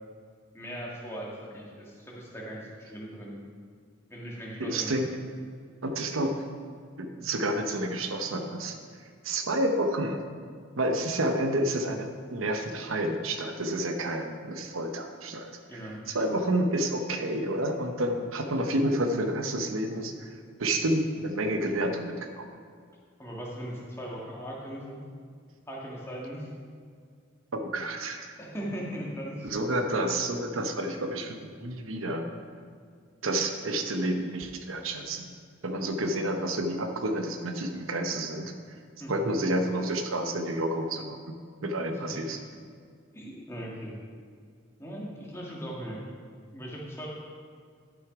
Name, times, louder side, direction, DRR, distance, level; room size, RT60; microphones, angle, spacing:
voice 1, 0.5-3.4 4.1-4.9 15.7-16.0 23.2-25.0 25.7-26.5 28.4-29.5 29.8-30.0 39.0-39.3 41.9-42.2 43.1-43.9 44.8-46.1 46.5-47.1, equal, 15° left, -4 dB, 1.6 m, -39 dB
voice 2, 4.6-5.1 5.8-6.4 7.0-8.8 9.2-10.2 10.8-22.5 27.5-28.3 29.4-32.3 33.2-35.3 35.6-38.5 39.1-41.2 41.6-42.4, right 1 dB, 90° right, 5 dB, 0.9 m, -29 dB
11.5 x 6.1 x 5.0 m, 2.1 s
head